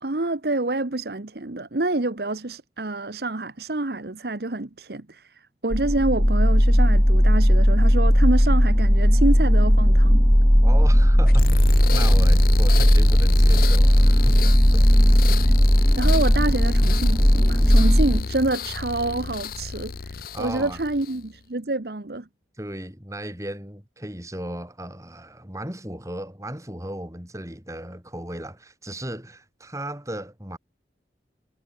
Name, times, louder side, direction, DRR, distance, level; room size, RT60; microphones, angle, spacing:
voice 1, 0.0-10.3 15.4-15.6 16.0-22.3, right 2 dB, 60° right, 1.2 m, -27 dB
sound 1, 5.7-18.2, equal, ahead, 0.4 m, -16 dB
voice 2, 10.6-15.4 20.3-20.8 22.5-30.6, right 1 dB, 15° right, 4.3 m, -36 dB
sound 2, 11.3-21.3, left 4 dB, 55° left, 0.6 m, -30 dB
head